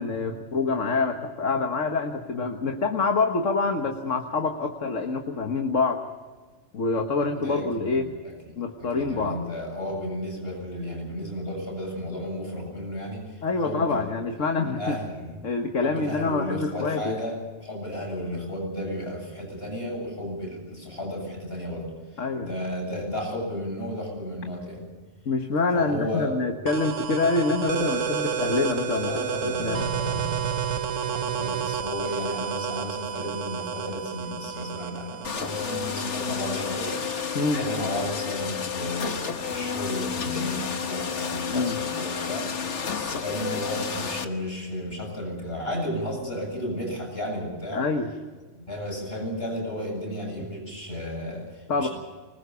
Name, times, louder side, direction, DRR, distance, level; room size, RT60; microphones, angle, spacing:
voice 1, 0.0-6.0 6.7-8.1 8.6-9.5 13.4-15.0 15.4-17.2 22.2-22.5 25.3-29.9 37.4-37.6 41.5-41.8 47.7-48.1 51.7-51.9, left 3 dB, 85° left, 4 dB, 1.8 m, -26 dB
voice 2, 7.4-14.1 14.3-14.4 14.8-15.4 15.8-24.8 25.7-26.3 29.0-37.0 37.5-47.8 48.5-51.9, left 1 dB, 55° left, 0 dB, 8.3 m, -33 dB
sound 1, 26.7-38.0, right 7 dB, 85° right, 1.4 m, -31 dB
sound 2, 35.2-44.2, left 6 dB, 70° left, 1.6 m, -31 dB
25.0 x 20.5 x 6.9 m, 1.4 s
omnidirectional pair, 1.3 m